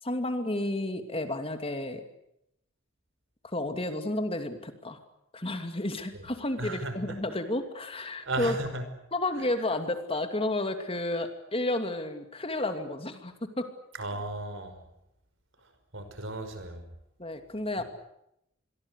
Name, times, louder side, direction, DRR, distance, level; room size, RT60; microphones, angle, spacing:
voice 1, 0.0-2.0 3.5-5.0 5.3-8.5 9.1-13.7 17.2-17.8, left 1 dB, 30° left, 8 dB, 2.6 m, -31 dB
voice 2, 6.6-7.0 8.3-8.8 14.0-14.8 15.9-16.8, right 2 dB, 65° right, 9 dB, 5.5 m, -35 dB
27.5 x 22.5 x 8.3 m, 0.80 s
head